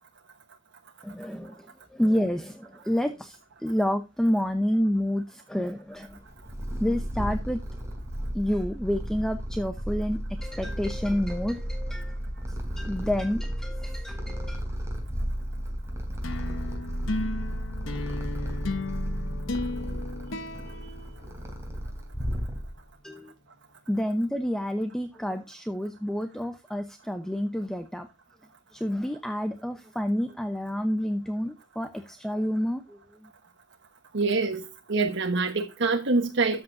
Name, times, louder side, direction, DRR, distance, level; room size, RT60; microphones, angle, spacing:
voice 1, 1.0-6.2 6.8-7.6 8.3-12.2 12.8-14.6 23.0-23.3 23.9-28.1 28.7-33.3, equal, 5° left, 0.8 m, -29 dB
Purr, 6.1-22.9, equal, 15° right, 3.2 m, -33 dB
sound 1, 16.2-21.8, left 2 dB, 75° left, 1.0 m, -35 dB
voice 2, 34.1-36.6, right 3 dB, 60° right, 1.2 m, -25 dB
13.5 x 8.2 x 2.6 m
head